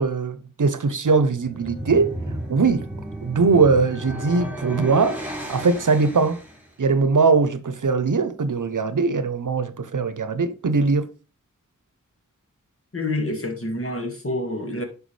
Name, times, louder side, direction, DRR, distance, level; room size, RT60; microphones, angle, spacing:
voice 1, 0.0-2.1 2.5-2.8 3.2-5.2 5.5-6.4 6.8-11.1, right 4 dB, 70° right, 0.9 m, -20 dB
sound 1, 1.3-6.7, right 1 dB, 5° right, 3.3 m, -33 dB
voice 2, 12.9-14.8, left 1 dB, 45° left, 2.0 m, -27 dB
10.5 x 4.8 x 3.3 m
wide cardioid pair, 50°, 32 cm